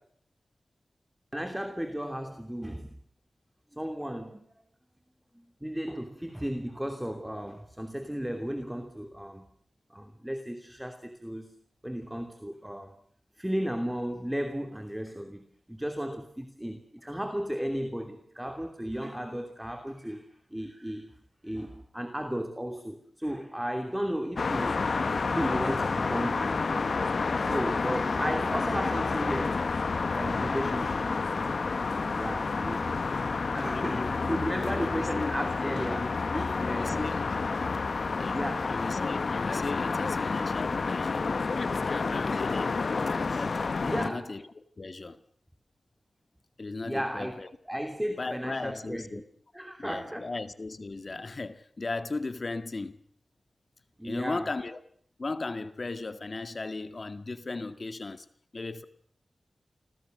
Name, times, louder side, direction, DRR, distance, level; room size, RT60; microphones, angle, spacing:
voice 1, 1.3-3.0 3.7-4.5 5.3-9.5 9.9-11.5 11.8-13.0 13.4-21.1 21.4-24.9 25.2-27.0 27.3-29.7 30.1-31.1 32.2-33.2 33.5-37.1 38.3-38.8 43.8-44.3 46.8-47.4 47.7-49.2 49.5-50.3 54.0-54.5, equal, 5° right, 2.9 m, -35 dB
sound 1, 24.4-44.1, left 4 dB, 65° left, 1.4 m, -29 dB
voice 2, 33.7-35.3 36.0-36.2 36.6-37.3 38.0-41.3 41.9-42.7 43.3-45.2 46.6-47.5 48.2-49.2 49.8-53.0 54.0-54.8 55.2-58.3 58.5-58.9, left 3 dB, 45° left, 1.8 m, -37 dB
30.0 x 22.5 x 6.7 m
wide cardioid pair, 95°, 0 cm